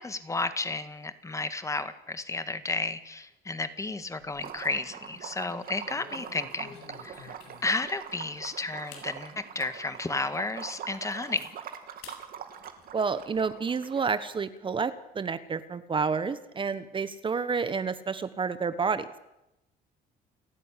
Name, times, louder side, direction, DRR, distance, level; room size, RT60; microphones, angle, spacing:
voice 1, 0.0-7.4 7.6-11.5, left 3 dB, 20° left, 11 dB, 1.7 m, -32 dB
sound 1, 4.0-4.7 5.1-5.3 5.8-7.9 8.4-8.5 8.9-9.1 9.6-9.7 10.2-10.3 10.7-11.5 12.0-12.2 12.6-13.5, left 6 dB, 85° left, 5.7 m, -50 dB
Liquid, 4.3-14.3, right 8 dB, 60° right, 2.7 m, -43 dB
voice 2, 12.9-19.2, right 5 dB, 30° right, 13 dB, 1.2 m, -30 dB
29.5 x 11.0 x 10.0 m, 0.91 s
cardioid pair, 110°, 17 cm